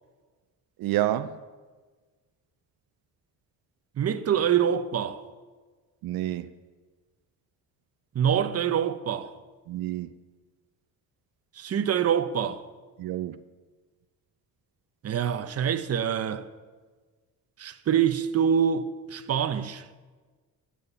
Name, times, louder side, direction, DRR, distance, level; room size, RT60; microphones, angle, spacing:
voice 1, 0.8-1.4 6.0-6.5 9.7-10.1 13.0-13.4, right 13 dB, 85° right, 0.6 m, -28 dB
voice 2, 4.0-5.2 8.1-9.3 11.6-12.6 15.0-16.5 17.6-19.8, right 8 dB, 45° right, 0.9 m, -25 dB
12.5 x 9.2 x 6.9 m
cardioid pair, 110°, 35 cm